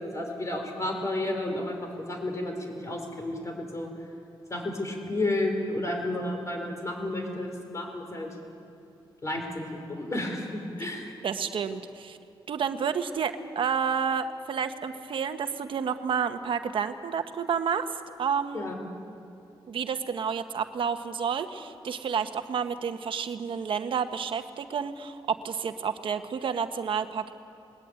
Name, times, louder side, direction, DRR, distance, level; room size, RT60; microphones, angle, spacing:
voice 1, 0.0-3.9 4.5-8.3 9.2-11.1 18.5-18.8, left 1 dB, 35° left, 3 dB, 4.7 m, -32 dB
voice 2, 11.2-12.2 12.5-18.7 19.7-27.3, right 7 dB, 70° right, 8 dB, 1.1 m, -30 dB
21.0 x 19.5 x 9.1 m, 2.5 s
cardioid pair, 105°, 9 cm